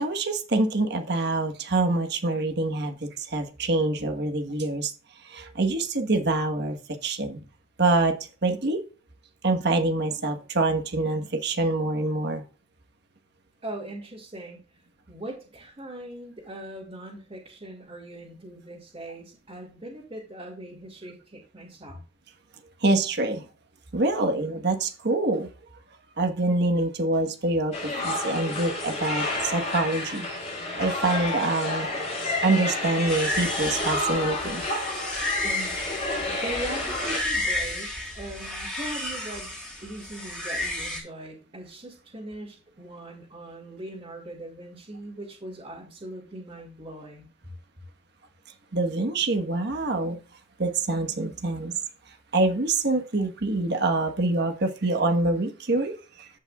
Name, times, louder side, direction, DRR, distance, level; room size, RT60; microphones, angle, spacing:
voice 1, 0.0-4.9 5.2-7.4 7.8-8.2 8.4-8.8 9.4-12.4 22.8-23.4 23.9-25.5 26.2-32.2 32.4-34.7 48.7-50.2 50.6-51.7 52.3-56.3, right 2 dB, 60° right, 5 dB, 1.3 m, -25 dB
voice 2, 13.6-14.8 15.1-22.0 35.4-39.5 39.8-47.3, right 1 dB, 30° right, -5 dB, 2.3 m, -40 dB
sound 1, 27.7-37.2, left 2 dB, 35° left, 3.5 m, -30 dB
sound 2, 33.1-41.0, left 1 dB, 5° left, 2.9 m, -32 dB
15.0 x 5.5 x 2.4 m, 0.35 s
head